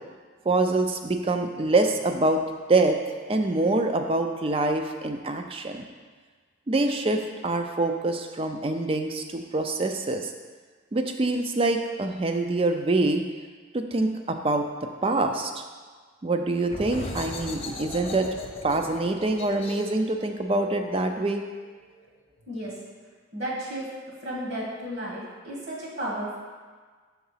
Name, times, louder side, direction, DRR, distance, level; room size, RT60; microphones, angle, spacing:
voice 1, 0.5-2.4 2.7-3.0 3.3-5.8 6.7-10.3 10.9-13.2 13.7-14.7 15.0-15.6 16.2-18.3 18.6-21.4, right 2 dB, 30° right, 5 dB, 0.4 m, -25 dB
sound 1, 16.6-22.0, left 2 dB, 30° left, 0.5 m, -39 dB
voice 2, 22.5-22.8 23.3-23.9 24.2-26.4, right 1 dB, 55° right, -4 dB, 1.4 m, -33 dB
5.8 x 3.7 x 5.6 m, 1.5 s
head